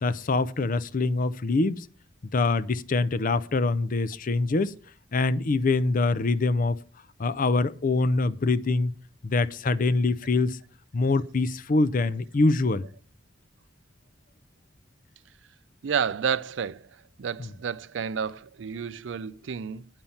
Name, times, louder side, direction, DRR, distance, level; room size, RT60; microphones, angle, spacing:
voice 1, 0.0-1.8 2.3-4.7 5.1-6.8 7.2-8.9 9.2-10.6 10.9-12.8, left 3 dB, 45° left, 0.5 m, -24 dB
voice 2, 15.8-16.8 17.2-19.9, right 7 dB, 70° right, 0.4 m, -30 dB
8.9 x 5.6 x 7.1 m
head